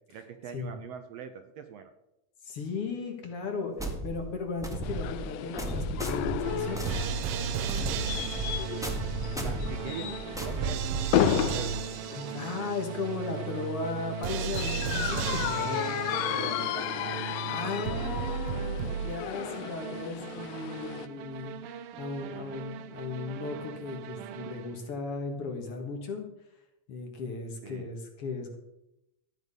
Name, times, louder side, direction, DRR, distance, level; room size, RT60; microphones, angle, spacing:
voice 1, 0.0-1.9 9.4-10.8 11.4-11.7 15.6-17.2 27.6-27.9, right 7 dB, 70° right, 7 dB, 1.8 m, -42 dB
voice 2, 2.4-6.9 9.3-9.6 12.1-15.8 17.5-26.3 26.9-28.5, left 4 dB, 55° left, 3 dB, 2.4 m, -36 dB
sound 1, 3.8-11.4, right 1 dB, 5° right, 0.6 m, -35 dB
sound 2, 4.8-21.1, left 11 dB, 80° left, 1.5 m, -34 dB
sound 3, 6.4-24.9, right 8 dB, 90° right, 1.3 m, -35 dB
13.5 x 9.2 x 5.5 m, 0.87 s
omnidirectional pair, 3.5 m